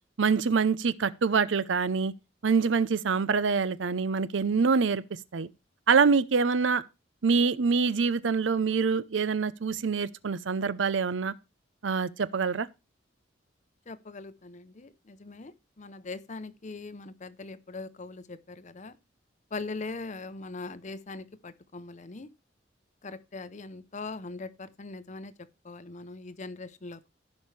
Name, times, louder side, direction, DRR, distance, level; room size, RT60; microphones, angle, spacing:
voice 1, 0.2-2.1 2.4-5.0 5.3-5.5 5.9-6.8 7.2-11.3 11.8-12.7, right 5 dB, 80° right, 0.6 m, -25 dB
voice 2, 13.9-19.0 19.5-22.3 23.0-25.3 25.6-27.1, left 3 dB, 40° left, 0.7 m, -41 dB
15.5 x 5.3 x 3.2 m
head